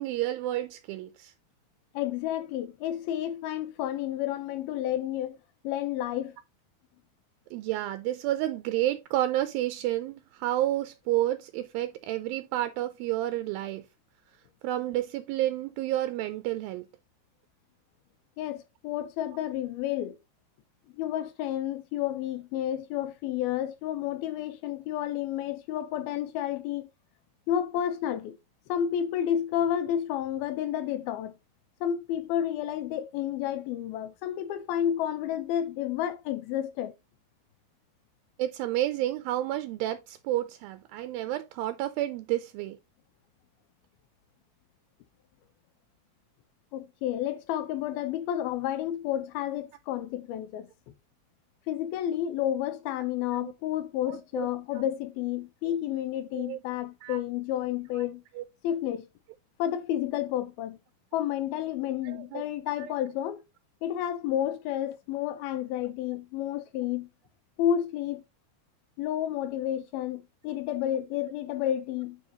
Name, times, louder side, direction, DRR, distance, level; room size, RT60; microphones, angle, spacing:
voice 1, 0.0-1.3 7.5-13.8 14.6-16.9 38.4-42.8 53.3-53.5 54.0-54.5 56.4-56.6 57.0-57.2 58.0-58.1 58.4-58.5 62.0-62.4 62.8-63.0, right 14 dB, 80° right, 2.4 m, -30 dB
voice 2, 1.9-5.4 5.6-6.3 18.4-20.2 20.9-26.9 27.5-28.4 28.7-31.3 31.8-36.9 46.7-50.7 51.7-58.2 58.6-59.1 59.6-60.8 61.1-63.4 63.8-67.1 67.6-68.2 69.0-72.2, left 11 dB, 85° left, 2.8 m, -31 dB
9.0 x 3.7 x 3.9 m
omnidirectional pair, 4.3 m